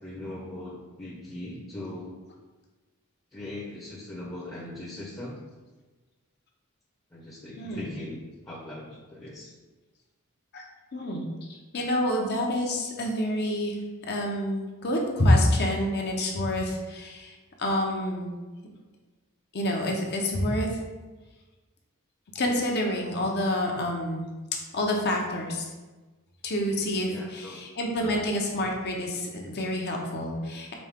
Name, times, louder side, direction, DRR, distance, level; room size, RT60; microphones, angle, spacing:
voice 1, 0.0-2.1 3.3-5.4 7.1-9.5 27.1-27.6 28.0-28.2, left 1 dB, 15° left, -6 dB, 0.7 m, -40 dB
voice 2, 10.9-13.8 14.1-17.3 17.6-18.3 19.5-20.7 22.3-24.3 24.7-25.7 26.4-30.7, left 1 dB, 50° left, 0 dB, 0.8 m, -27 dB
5.2 x 2.8 x 3.5 m, 1.2 s
head